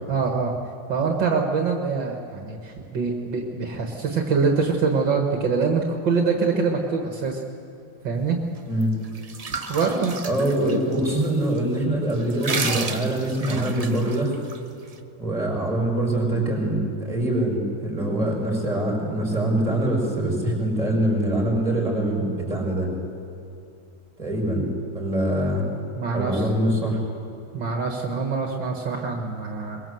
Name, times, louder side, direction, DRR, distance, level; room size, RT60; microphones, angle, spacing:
voice 1, 0.1-0.5 0.9-7.4 8.0-8.4 9.7-10.2 26.0-26.5 27.5-29.8, right 5 dB, 70° right, 2 dB, 2.3 m, -24 dB
sound 1, 8.8-11.3 11.6-11.7 12.1-14.6, right 4 dB, 35° right, 0.6 m, -31 dB
voice 2, 10.0-14.4 15.2-22.9 24.2-24.7 24.9-25.7 26.1-27.0, right 1 dB, 15° right, 0 dB, 5.4 m, -24 dB
22.5 x 21.5 x 7.8 m, 2.7 s
omnidirectional pair, 2.1 m